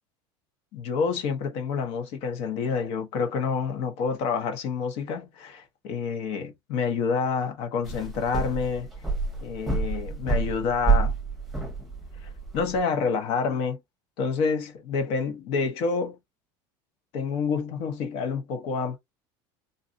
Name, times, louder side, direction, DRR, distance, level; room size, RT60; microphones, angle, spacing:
voice 1, 0.7-8.9 9.4-11.1 12.2-13.8 14.2-16.2 17.1-19.0, left 5 dB, 60° left, 1.2 m, -28 dB
sound 1, 7.8-12.8, right 4 dB, ahead, 1.0 m, -28 dB
4.0 x 2.6 x 2.6 m
cardioid pair, 150°, 11 cm